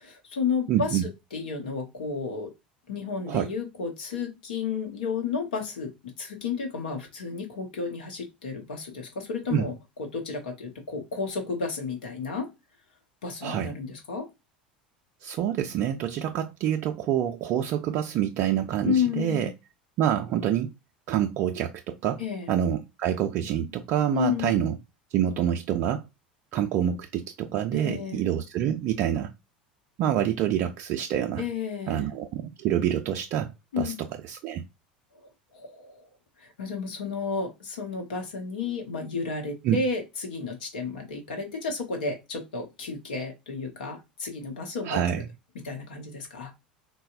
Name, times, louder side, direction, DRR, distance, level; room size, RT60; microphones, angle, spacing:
voice 1, 0.0-1.0 1.3-2.5 2.9-12.5 13.2-14.3 18.8-19.5 22.2-22.5 24.1-24.6 27.7-28.2 31.4-32.1 33.7-34.0 35.5-36.1 36.4-45.0 45.5-46.5, left 5 dB, 70° left, 0.9 m, -32 dB
voice 2, 0.7-1.1 3.3-3.5 9.5-9.7 13.4-13.7 15.2-19.5 20.0-20.7 21.1-22.2 22.5-24.8 25.1-26.0 26.5-29.3 30.0-31.4 31.9-33.9 34.3-34.6 39.6-39.8 44.8-45.3, right 10 dB, 45° right, 0.3 m, -27 dB
4.0 x 2.0 x 2.4 m
figure-of-eight pair, 75°, 5 cm